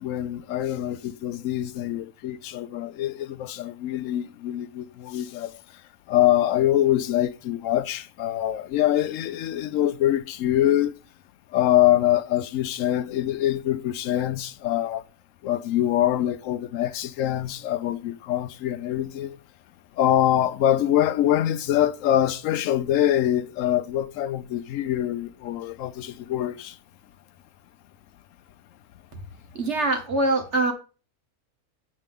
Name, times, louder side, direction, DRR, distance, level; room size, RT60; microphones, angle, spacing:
voice 1, 0.0-5.5 6.1-10.9 11.5-15.0 15.4-19.4 20.0-26.7, left 12 dB, 70° left, 0.9 m, -24 dB
voice 2, 29.6-30.7, right 2 dB, 50° right, 1.8 m, -23 dB
7.5 x 7.2 x 3.6 m
omnidirectional pair, 1.5 m